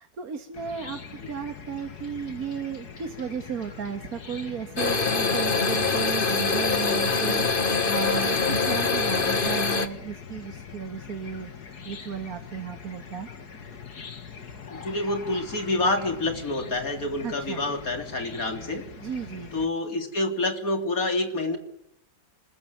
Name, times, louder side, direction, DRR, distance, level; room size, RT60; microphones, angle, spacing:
voice 1, 0.0-13.3 17.2-17.7 19.0-19.7, right 7 dB, 70° right, 6 dB, 2.1 m, -35 dB
Chicken rooster / Cricket, 0.5-19.7, left 6 dB, 85° left, 2.5 m, -42 dB
sound 1, 4.8-9.9, left 4 dB, 35° left, 1.7 m, -24 dB
voice 2, 14.7-18.8 19.5-21.6, left 2 dB, 65° left, 6 dB, 3.8 m, -27 dB
25.5 x 21.5 x 9.4 m, 0.80 s
omnidirectional pair, 1.6 m